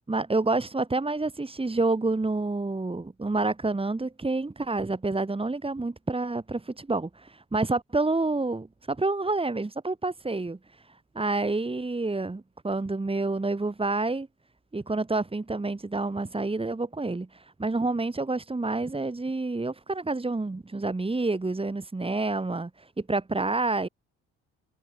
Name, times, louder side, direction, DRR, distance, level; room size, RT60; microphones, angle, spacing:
voice 1, 0.1-10.6 11.1-14.3 14.7-23.9, right 3 dB, 20° right, 5.1 m, -28 dB
cardioid pair, 90°, 30 cm